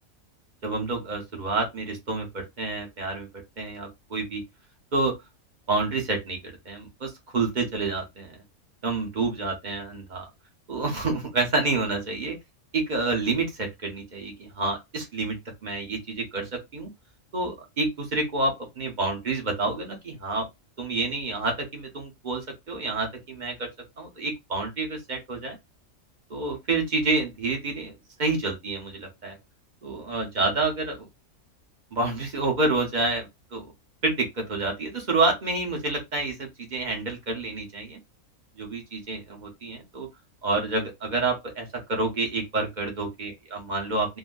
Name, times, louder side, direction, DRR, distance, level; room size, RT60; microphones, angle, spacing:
voice 1, 0.6-3.3 3.6-4.4 4.9-5.2 5.7-8.4 8.8-10.3 10.7-12.4 12.7-16.9 17.3-20.5 20.8-23.7 24.0-25.6 26.3-27.9 28.2-29.4 29.8-31.1 31.9-33.3 33.5-33.7 34.0-38.0 38.6-40.1 40.4-44.2, right 3 dB, 40° right, 1.0 m, -28 dB
3.8 x 2.2 x 2.5 m
omnidirectional pair, 1.4 m